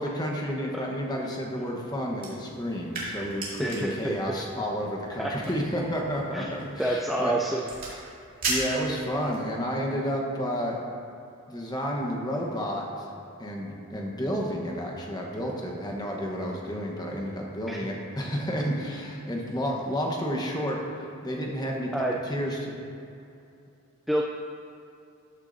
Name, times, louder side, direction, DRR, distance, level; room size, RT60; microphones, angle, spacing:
voice 1, 0.0-7.3 8.5-10.8 11.5-13.1 13.4-20.8 21.2-22.8, equal, 20° left, -1 dB, 1.1 m, -31 dB
sound 1, 2.1-9.5, right 2 dB, 40° right, 2.3 m, -37 dB
voice 2, 3.6-4.2 4.6-4.7 5.2-5.4 6.3-6.5 6.8-7.6 17.7-17.8 21.9-22.2 24.1-24.2, right 1 dB, ahead, -2 dB, 0.3 m, -28 dB
13.5 x 8.2 x 2.7 m, 2.7 s
head